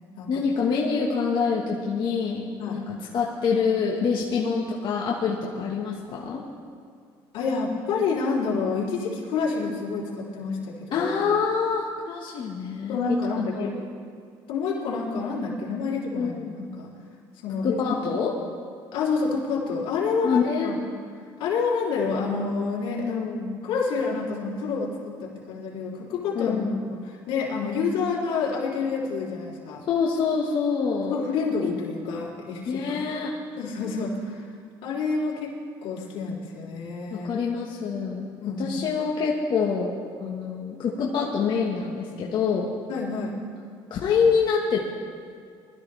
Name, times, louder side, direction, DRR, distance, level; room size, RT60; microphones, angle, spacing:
voice 1, 0.3-2.8 3.1-6.4 10.9-13.2 13.5-13.8 16.1-16.6 17.6-18.3 20.2-20.7 23.0-23.6 26.3-26.9 29.9-31.2 32.7-33.3 37.1-38.3 38.6-42.7 43.9-44.9, left 5 dB, 55° left, -3 dB, 1.6 m, -26 dB
voice 2, 7.3-11.1 12.8-13.7 14.5-16.9 17.4-17.8 18.1-18.2 18.9-20.8 21.4-26.6 27.0-29.8 31.0-33.0 33.6-34.5 34.8-35.5 35.8-37.3 38.4-38.8 42.9-43.3, left 4 dB, 80° left, -4 dB, 3.5 m, -28 dB
21.0 x 13.5 x 3.5 m, 2.2 s
cardioid pair, 110°, 9 cm